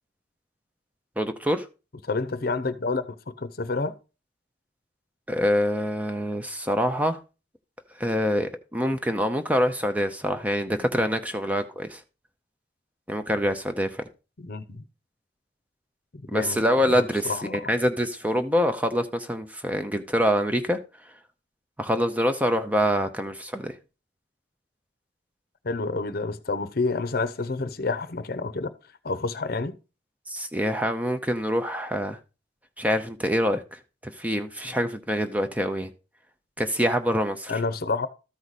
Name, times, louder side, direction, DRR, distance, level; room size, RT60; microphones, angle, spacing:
voice 1, 1.2-1.6 5.3-7.2 8.0-12.0 13.1-14.0 16.3-20.8 21.8-23.7 30.3-32.2 32.8-35.9 36.6-37.5, equal, 10° right, 0.6 m, -25 dB
voice 2, 2.0-3.9 14.4-14.8 16.3-16.6 16.9-17.7 25.6-28.7 29.0-29.8 37.5-38.1, left 3 dB, 55° left, 0.7 m, -29 dB
13.0 x 4.8 x 4.1 m
head